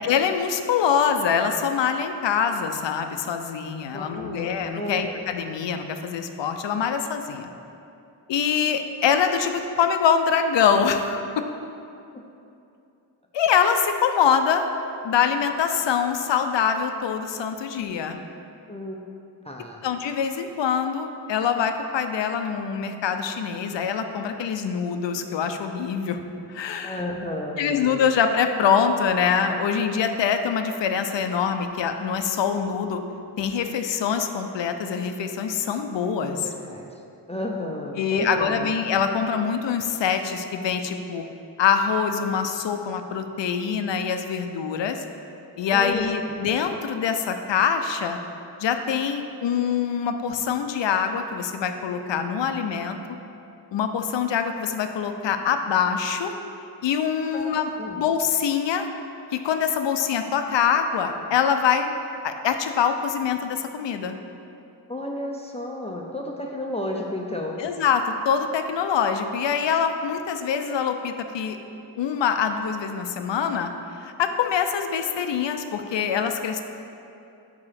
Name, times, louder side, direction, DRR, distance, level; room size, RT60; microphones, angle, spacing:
voice 1, 0.0-7.5 8.3-11.2 13.3-14.7 15.0-18.2 19.8-26.2 26.5-27.0 27.6-33.0 33.4-36.5 38.0-41.2 41.6-45.0 45.6-48.2 48.6-53.0 53.7-56.3 56.8-57.7 58.0-58.9 59.4-61.9 62.2-64.2 67.6-71.6 72.0-73.7 74.0-76.6, left 7 dB, 80° left, 7 dB, 0.5 m, -24 dB
voice 2, 3.9-5.2 12.1-12.2 18.7-19.0 19.4-19.8 26.8-28.1 36.3-36.9 37.3-38.7 45.7-46.4 57.3-58.0 64.9-67.5, left 1 dB, 15° left, 0 dB, 0.4 m, -33 dB
4.9 x 3.8 x 5.7 m, 2.7 s
wide cardioid pair, 75°, 43 cm